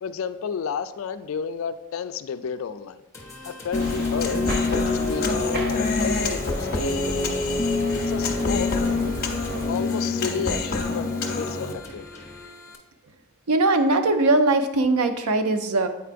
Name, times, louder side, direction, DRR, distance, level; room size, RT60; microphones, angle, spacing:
voice 1, 0.0-3.0 3.4-7.5 7.9-8.8 9.7-11.1 11.4-12.1, left 6 dB, 65° left, 12 dB, 0.3 m, -31 dB
sound 1, 3.1-12.7, left 2 dB, 15° left, 0.8 m, -43 dB
Human voice, 3.7-11.7, left 3 dB, 45° left, 0.7 m, -25 dB
sound 2, 3.7-9.7, equal, 45° right, 0.8 m, -34 dB
voice 2, 13.5-15.9, right 2 dB, 90° right, 8 dB, 0.6 m, -20 dB
8.4 x 4.6 x 2.5 m, 1.0 s
head